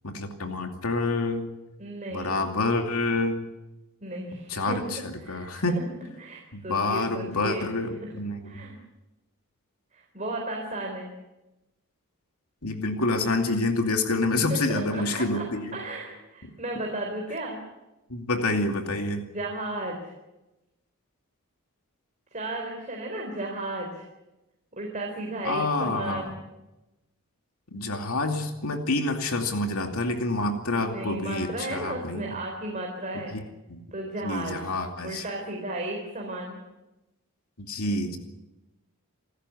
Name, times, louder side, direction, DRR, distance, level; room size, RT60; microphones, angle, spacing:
voice 1, 0.0-1.5 2.1-3.4 4.5-5.8 6.5-8.5 12.6-15.8 18.1-19.2 25.4-26.3 27.7-32.4 33.3-33.4 33.7-33.8 34.2-35.2 37.6-38.2, left 2 dB, 80° left, 4 dB, 2.6 m, -27 dB
voice 2, 1.8-2.4 4.0-5.6 6.2-7.8 8.4-8.7 9.9-11.1 14.5-15.5 15.7-17.6 19.3-20.0 22.3-24.1 24.8-26.4 30.8-33.4 33.9-34.7 35.0-36.6, right 1 dB, 35° right, 0 dB, 4.1 m, -34 dB
28.0 x 13.5 x 9.7 m, 1.0 s
head